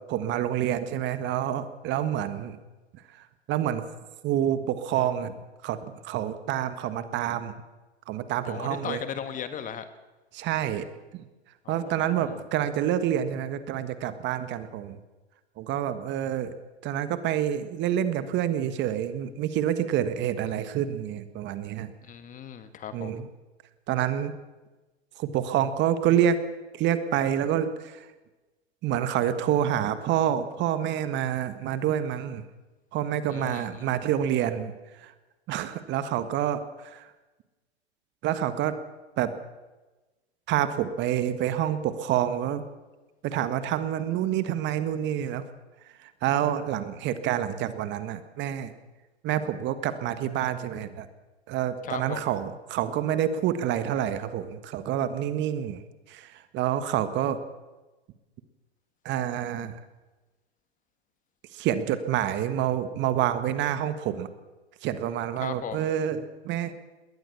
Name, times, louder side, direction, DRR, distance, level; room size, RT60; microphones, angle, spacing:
voice 1, 0.0-2.6 3.5-3.8 4.2-5.3 5.6-7.5 8.1-9.0 10.3-10.8 11.1-11.2 11.7-15.0 15.6-16.5 16.8-21.9 22.9-23.2 23.9-24.4 25.2-26.4 26.7-28.0 28.8-32.4 32.9-34.7 35.0-35.1 35.5-37.1 38.2-38.8 39.2-39.3 40.5-42.6 43.2-45.4 46.0-48.7 49.2-51.1 51.5-55.8 56.1-57.4 59.0-59.8 61.5-64.3 64.8-66.7, right 10 dB, 35° right, 11 dB, 1.6 m, -27 dB
voice 2, 8.4-9.8 11.6-12.4 22.0-23.2 33.3-33.9 51.8-52.3 65.4-65.9, left 8 dB, 25° left, 11 dB, 1.6 m, -37 dB
21.0 x 18.5 x 7.0 m, 1.2 s
hypercardioid pair, 110°, 33 cm